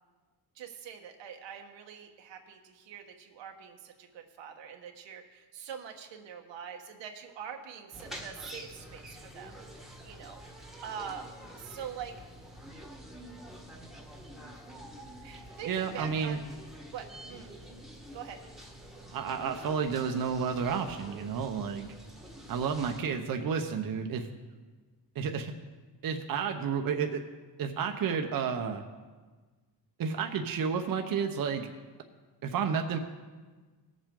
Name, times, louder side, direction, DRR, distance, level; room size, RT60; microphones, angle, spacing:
voice 1, 0.5-10.4 10.8-11.3 11.5-12.1 12.7-12.9 15.2-16.4 16.9-17.6 18.1-18.4, right 8 dB, 85° right, 4 dB, 1.4 m, -44 dB
sound 1, 7.9-23.0, equal, ahead, 1.4 m, -47 dB
voice 2, 15.6-16.4 19.1-21.9 22.5-24.3 25.1-25.5 26.0-27.2 27.6-28.8 30.0-31.7 32.4-33.0, right 6 dB, 50° right, 5 dB, 0.9 m, -31 dB
18.5 x 7.4 x 3.8 m, 1.4 s
cardioid pair, 105°, 43 cm